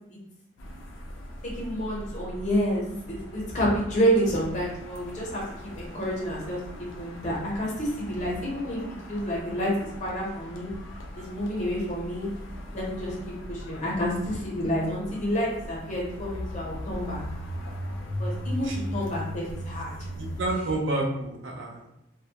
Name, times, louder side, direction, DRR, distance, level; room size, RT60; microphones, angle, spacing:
sound 1, 0.6-20.5, equal, 70° left, 0.4 m, -39 dB
voice 1, 1.4-5.4 5.7-8.8 9.1-10.7 11.2-12.3 12.7-13.2 13.5-17.2 18.2-19.9, equal, 35° left, -4 dB, 0.7 m, -29 dB
voice 2, 20.1-21.9, right 2 dB, 70° right, -1 dB, 0.5 m, -29 dB
2.2 x 2.0 x 2.8 m, 0.83 s
head